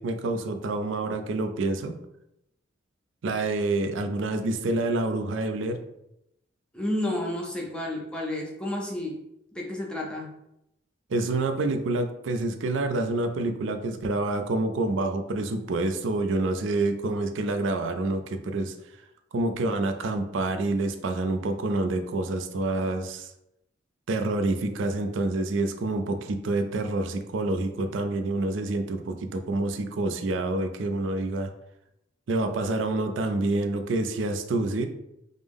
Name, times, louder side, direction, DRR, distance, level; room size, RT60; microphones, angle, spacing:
voice 1, 0.0-2.0 3.2-5.8 11.1-18.7 19.3-23.3 24.1-31.5 32.3-34.9, right 2 dB, 75° right, 7 dB, 0.4 m, -27 dB
voice 2, 6.7-9.2 9.5-10.3, left 1 dB, 5° left, -2 dB, 0.5 m, -31 dB
5.1 x 2.0 x 3.5 m, 0.83 s
head